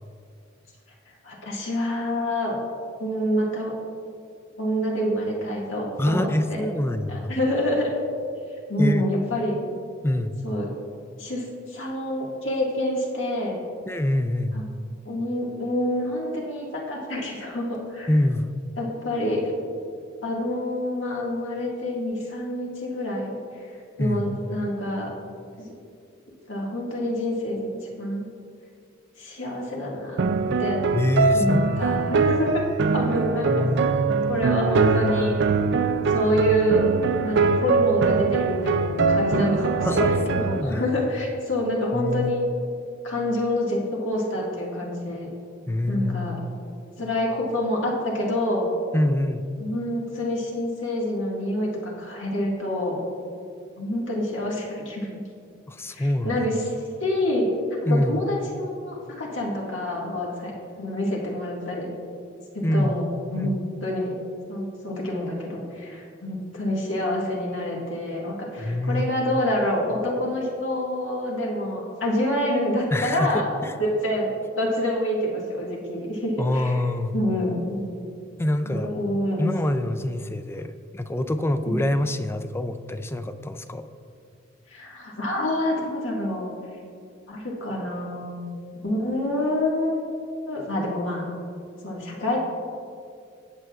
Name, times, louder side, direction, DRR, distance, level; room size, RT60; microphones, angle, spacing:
voice 1, 1.2-2.6 3.0-3.8 4.6-6.6 7.1-7.9 8.7-9.6 10.4-10.7 11.2-13.6 14.5-14.6 15.1-18.1 18.8-19.5 20.2-23.7 24.0-25.1 25.6-25.7 26.5-27.7 28.0-28.3 29.2-30.3 30.6-30.8 31.3-32.6 32.9-33.6 34.3-35.4 36.1-36.9 37.2-42.4 43.0-45.3 45.9-46.3 47.0-48.7 49.6-53.0 53.8-55.1 55.9-56.6 57.0-57.5 57.9-60.5 60.8-61.9 62.5-63.5 63.8-64.2 64.5-73.5 74.0-74.3 74.6-76.8 77.1-77.8 78.6-79.5 81.7-81.8 84.7-86.5 87.3-88.5 88.8-90.0 90.5-91.3 91.8-92.4, left 1 dB, 75° left, -3 dB, 2.0 m, -27 dB
voice 2, 6.0-7.3 8.8-9.0 10.0-10.4 13.9-14.6 18.1-18.5 24.0-24.3 30.9-32.0 33.5-33.9 39.8-40.9 41.9-42.3 45.7-46.3 48.9-49.4 55.7-56.5 57.9-58.3 62.6-63.0 63.4-63.6 68.6-69.1 72.9-73.7 76.4-77.1 78.4-78.9 79.4-83.9, left 1 dB, 15° left, 10 dB, 0.4 m, -25 dB
sound 1, 30.2-40.6, right 4 dB, 60° right, 0.4 m, -22 dB
18.0 x 7.7 x 2.4 m, 2.3 s
head